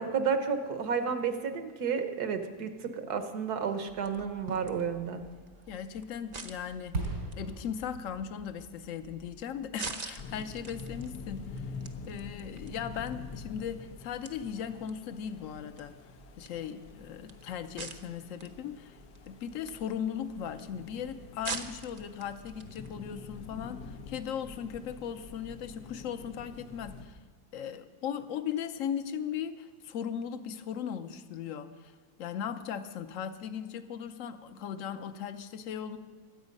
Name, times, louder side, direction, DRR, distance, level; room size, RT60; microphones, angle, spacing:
voice 1, 0.0-5.2, right 6 dB, 75° right, 7 dB, 1.6 m, -31 dB
sound 1, 3.9-22.9, right 4 dB, 35° right, 0.7 m, -48 dB
Fireworks, 4.4-10.2 10.6-10.7, right 2 dB, 90° right, 3.8 m, -42 dB
voice 2, 5.7-7.0 7.4-11.7 12.1-15.9 16.4-19.0 19.3-27.2 27.5-31.9 32.2-36.0, left 8 dB, 60° left, 10 dB, 1.1 m, -38 dB
sound 2, 10.2-27.1, left 4 dB, 80° left, 1.5 m, -47 dB
23.5 x 8.1 x 5.3 m, 1.4 s
omnidirectional pair, 1.7 m